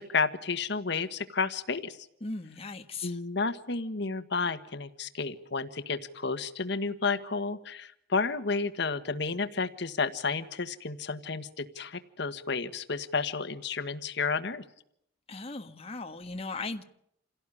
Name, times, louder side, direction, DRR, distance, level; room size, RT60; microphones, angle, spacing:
voice 1, 0.0-2.0 3.0-14.6, left 4 dB, 65° left, 1.5 m, -31 dB
voice 2, 2.2-3.2 15.3-16.8, left 3 dB, 30° left, 1.5 m, -38 dB
28.0 x 17.5 x 9.9 m
head